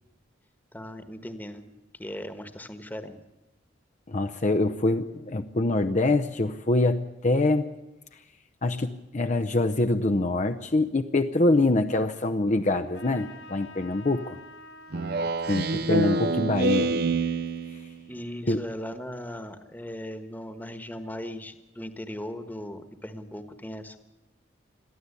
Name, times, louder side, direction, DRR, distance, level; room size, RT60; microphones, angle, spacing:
voice 1, 0.7-3.2 18.1-24.0, left 1 dB, 10° left, 9 dB, 1.3 m, -38 dB
voice 2, 4.1-7.7 8.6-14.4 15.5-16.9 18.5-18.6, left 2 dB, 40° left, 7 dB, 0.7 m, -25 dB
Trumpet, 12.9-17.9, left 2 dB, 80° left, 3.6 m, -50 dB
Speech synthesizer, 14.9-18.0, right 3 dB, 55° right, 0.7 m, -26 dB
22.0 x 14.5 x 8.3 m, 1.0 s
head